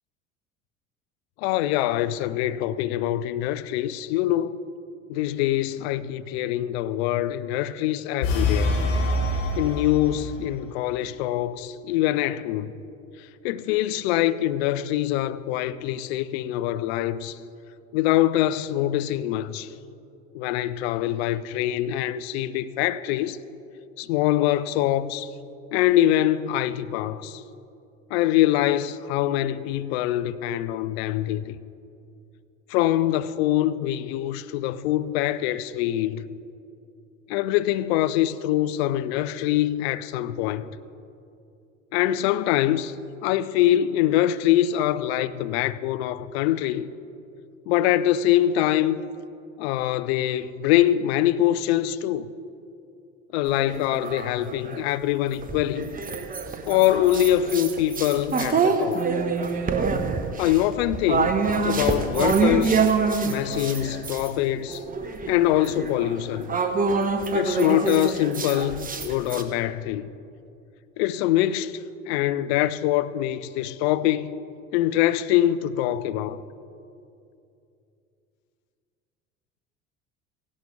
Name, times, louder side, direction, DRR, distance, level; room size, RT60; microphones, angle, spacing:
voice 1, 1.4-4.6 5.1-8.7 9.6-12.7 13.4-17.4 17.9-19.7 20.3-23.4 24.0-25.3 25.7-27.4 28.1-31.6 32.7-36.3 37.3-40.7 41.9-42.9 43.2-46.9 47.7-49.1 49.6-52.3 53.3-55.9 56.6-59.0 60.4-61.3 61.6-62.8 63.2-64.8 65.3-66.6 67.3-70.1 71.0-71.8 72.1-74.3 74.7-76.4, left 13 dB, 55° left, 0.6 m, -24 dB
sound 1, 8.2-10.5, left 2 dB, 75° left, 1.6 m, -25 dB
sound 2, 53.5-54.8 55.4-64.3 64.7-69.4, right 4 dB, 20° right, 1.1 m, -26 dB
17.0 x 16.0 x 3.5 m
figure-of-eight pair, 65°, 38 cm